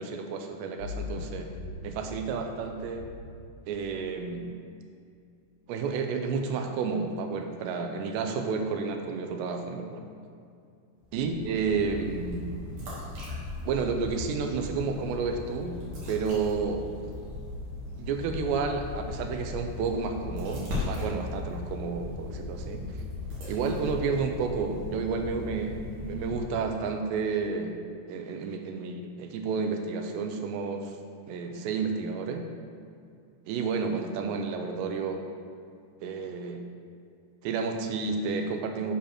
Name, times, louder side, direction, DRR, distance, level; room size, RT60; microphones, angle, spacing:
voice 1, 0.0-1.5 1.8-3.0 3.7-4.5 5.7-10.1 11.1-12.4 13.7-15.8 16.1-16.8 18.0-22.8 23.5-27.8 28.1-30.9 31.3-32.5 33.5-35.2 36.0-36.7 37.4-38.9, right 5 dB, 85° right, 4 dB, 2.9 m, -31 dB
sound 1, 0.8-4.3, left 4 dB, 75° left, 1.9 m, -41 dB
sound 2, 11.0-26.9, left 3 dB, 55° right, 3.1 m, -38 dB
8.0 x 4.4 x 6.2 m, 2.4 s
omnidirectional pair, 5.0 m